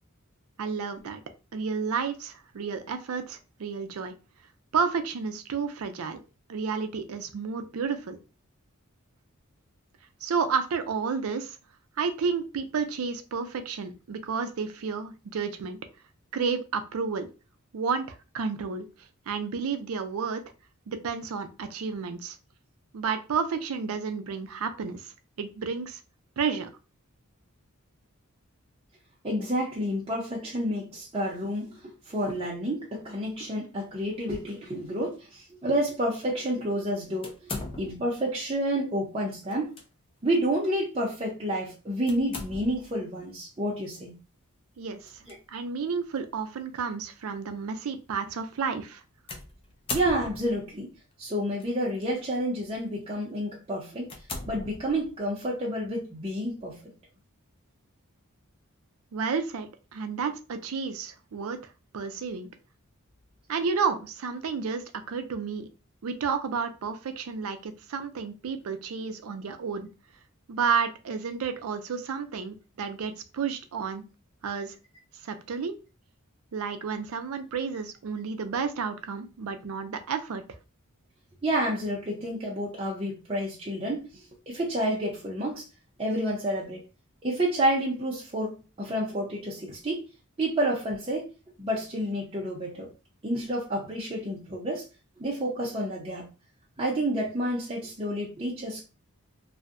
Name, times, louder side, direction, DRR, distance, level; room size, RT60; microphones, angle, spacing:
voice 1, 0.6-1.2 1.5-4.1 4.7-6.2 6.5-8.2 10.2-11.6 12.0-15.8 16.3-17.3 17.7-18.9 19.3-20.4 20.9-22.4 22.9-26.0 26.4-26.7 44.8-45.2 45.5-49.0 59.1-61.6 61.9-62.5 63.5-65.7 66.0-69.9 70.5-74.0 74.4-74.8 75.2-75.8 76.5-80.4, right 5 dB, 75° right, 9 dB, 0.4 m, -31 dB
voice 2, 29.2-31.8 32.1-37.5 37.8-39.7 40.2-44.2 45.2-45.3 49.9-50.9 51.2-54.1 54.5-56.9 81.4-84.1 84.5-85.6 86.0-86.8 87.2-90.0 90.4-91.3 91.6-92.9 93.2-94.8 95.2-96.3 96.8-98.8, right 1 dB, 25° right, -5 dB, 0.6 m, -29 dB
sound 1, 37.2-38.2 39.5-39.8 40.3-40.4 42.1-43.0 45.0-45.3 46.2-46.3 49.3-50.7 51.6-52.0 52.6-52.8 53.3-53.4 54.0-55.3, left 3 dB, 25° left, 0.3 m, -39 dB
2.6 x 2.1 x 2.5 m, 0.31 s
head